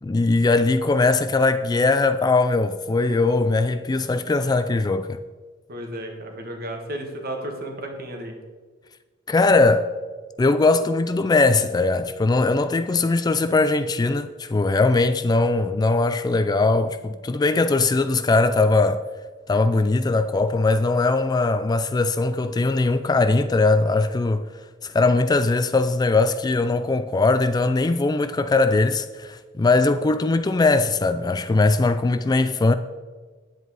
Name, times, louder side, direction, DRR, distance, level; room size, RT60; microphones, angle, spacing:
voice 1, 0.0-5.2 9.3-9.9 10.4-19.0 19.5-24.5 24.8-32.7, left 3 dB, 20° left, 0.3 m, -20 dB
voice 2, 5.7-8.3, right 1 dB, 50° right, 1.7 m, -33 dB
9.5 x 8.0 x 4.8 m
head